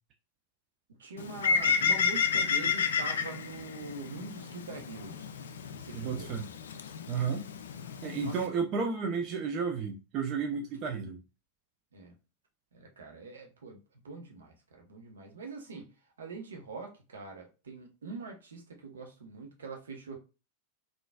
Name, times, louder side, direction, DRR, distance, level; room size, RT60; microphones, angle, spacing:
voice 1, 1.0-5.3 5.7-6.3 8.2-8.4 11.9-12.1 12.7-13.8 14.0-15.9 16.2-20.2, right 3 dB, 65° right, 0.8 m, -44 dB
Bird, 1.2-8.5, left 6 dB, 65° left, 0.3 m, -31 dB
voice 2, 5.9-6.5 7.1-7.4 8.0-11.2, right 5 dB, 35° right, 0.4 m, -32 dB
3.8 x 2.4 x 2.3 m
figure-of-eight pair, 90°, 0 cm